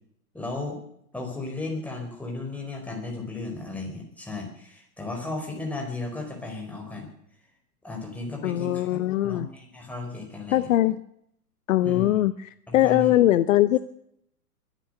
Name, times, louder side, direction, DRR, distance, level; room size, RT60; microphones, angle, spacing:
voice 1, 0.3-0.8 1.1-7.1 7.8-10.7 11.8-12.1 12.7-13.2, left 3 dB, 5° left, 0 dB, 4.8 m, -35 dB
voice 2, 8.4-9.5 10.5-11.0 11.7-13.8, left 14 dB, 55° left, 15 dB, 0.8 m, -21 dB
23.0 x 9.2 x 6.7 m, 0.72 s
hypercardioid pair, 130°, 46 cm